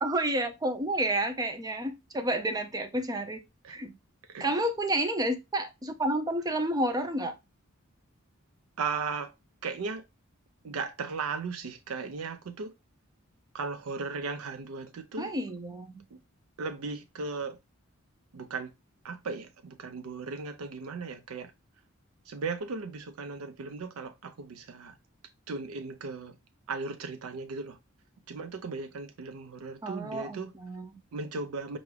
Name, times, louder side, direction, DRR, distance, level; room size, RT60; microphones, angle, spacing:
voice 1, 0.0-3.4 3.7-3.9 4.4-7.3 15.2-16.0 29.8-31.0, right 1 dB, 20° right, 0.5 m, -30 dB
voice 2, 8.8-9.3 9.6-10.0 10.6-12.7 13.5-15.3 16.6-17.6 18.3-18.7 19.0-21.5 22.3-24.9 25.5-26.3 26.7-27.8 28.3-30.5 31.1-31.8, right 4 dB, 85° right, 0.5 m, -36 dB
4.6 x 2.6 x 3.2 m
head